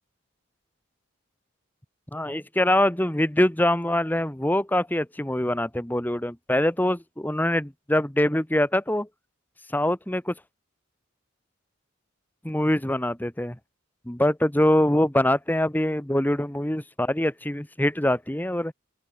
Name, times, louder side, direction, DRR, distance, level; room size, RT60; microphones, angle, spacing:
voice 1, 2.1-9.1 9.7-10.3 12.4-13.6 14.1-18.7, left 1 dB, 10° left, 1.2 m, -24 dB
open air
head